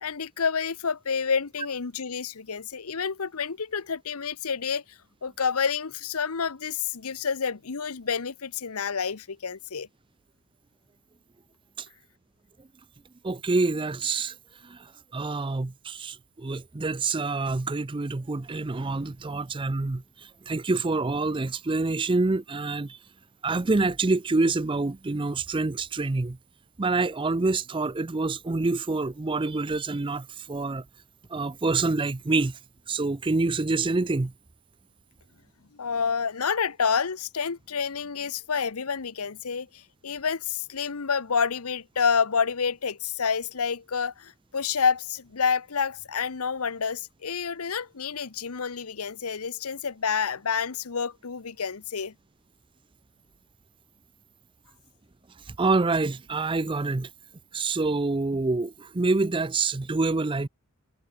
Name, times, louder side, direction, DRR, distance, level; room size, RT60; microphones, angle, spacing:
voice 1, 0.0-4.8 5.2-9.9 35.7-52.1, left 6 dB, 75° left, 0.9 m, -29 dB
voice 2, 13.2-14.3 14.6-23.0 23.4-26.4 26.8-30.8 31.3-32.6 32.9-34.3 55.5-57.1 57.5-60.5, right 3 dB, 20° right, 0.5 m, -27 dB
head